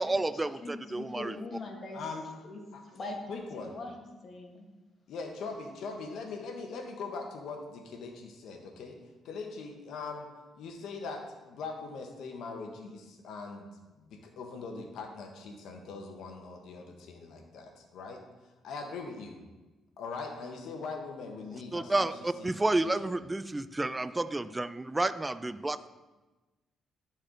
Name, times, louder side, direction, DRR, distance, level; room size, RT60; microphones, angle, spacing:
voice 1, 0.0-1.4 21.7-25.9, right 2 dB, 15° right, 12 dB, 0.4 m, -30 dB
voice 2, 0.6-2.0 2.4-2.6 2.9-4.7, left 2 dB, 45° left, 2 dB, 1.5 m, -42 dB
voice 3, 1.9-2.3 2.7-2.8 3.3-3.7 5.1-9.0 9.2-10.3 10.6-13.7 14.0-18.2 18.6-19.4 20.0-22.1 22.4-22.6, left 4 dB, 75° left, 3 dB, 1.1 m, -41 dB
11.5 x 4.3 x 3.8 m, 1.2 s
cardioid pair, 90°, 0 cm